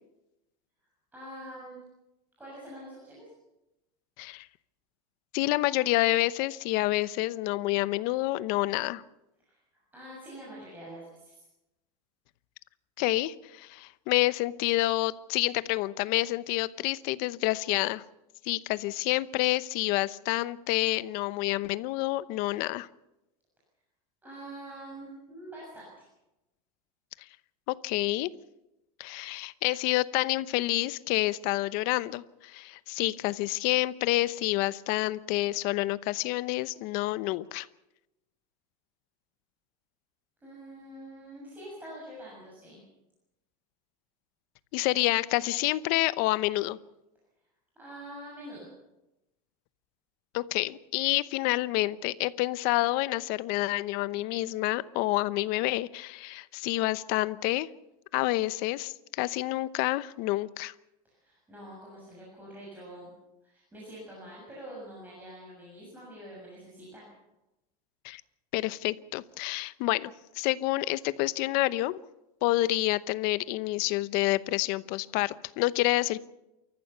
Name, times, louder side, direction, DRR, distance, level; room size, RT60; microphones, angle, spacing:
voice 1, 1.1-1.8 2.4-3.3 9.4-11.4 24.2-26.1 40.4-42.8 47.7-48.7 61.0-63.1 63.4-67.0, right 1 dB, 10° right, -5 dB, 6.9 m, -45 dB
voice 2, 5.3-9.0 13.0-18.0 18.4-22.9 27.7-28.3 29.0-37.7 44.7-46.8 50.3-57.7 58.1-60.7 68.0-68.2 68.5-72.0 72.4-76.2, left 18 dB, 50° left, 16 dB, 0.8 m, -28 dB
28.5 x 14.5 x 6.9 m, 0.94 s
supercardioid pair, 155°, 19 cm